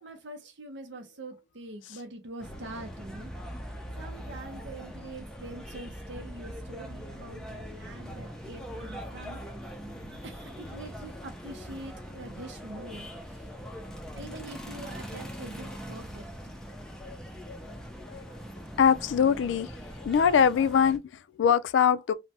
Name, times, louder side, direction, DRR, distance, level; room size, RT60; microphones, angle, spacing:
voice 1, 0.0-3.3 4.0-9.4 10.2-13.5 14.1-16.3, right 2 dB, 80° right, 0.6 m, -44 dB
sound 1, 2.4-21.0, equal, 5° left, 0.4 m, -42 dB
voice 2, 18.8-19.7 20.0-22.1, left 7 dB, 90° left, 0.3 m, -23 dB
3.2 x 2.1 x 2.7 m
head